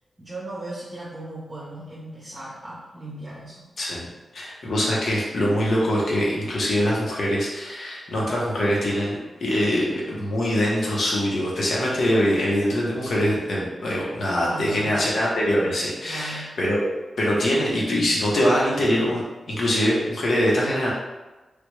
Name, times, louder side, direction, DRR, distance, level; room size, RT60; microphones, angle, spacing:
voice 1, 0.2-3.7 14.4-15.1 16.1-16.5, right 1 dB, 20° right, -7 dB, 0.7 m, -37 dB
voice 2, 4.3-16.8 17.2-20.9, equal, 65° left, -4 dB, 0.9 m, -23 dB
3.3 x 2.4 x 3.2 m, 1.2 s
wide cardioid pair, 125°, 0 cm